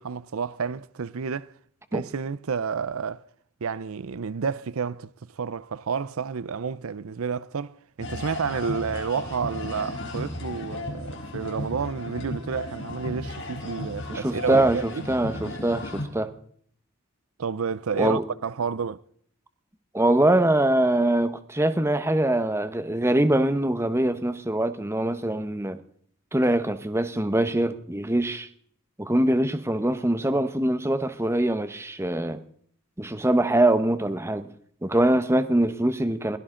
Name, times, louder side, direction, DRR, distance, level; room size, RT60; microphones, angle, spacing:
voice 1, 0.0-1.5 1.9-3.3 3.6-15.0 17.4-19.0, right 5 dB, 75° right, 0.6 m, -30 dB
sound 1, 8.0-16.1, left 2 dB, 60° left, 3.8 m, -35 dB
voice 2, 14.1-16.3 18.0-18.2 19.9-25.8 26.3-28.5 29.0-32.4 33.0-34.5 34.8-36.4, right 1 dB, 10° right, 1.0 m, -23 dB
22.0 x 17.0 x 3.8 m
head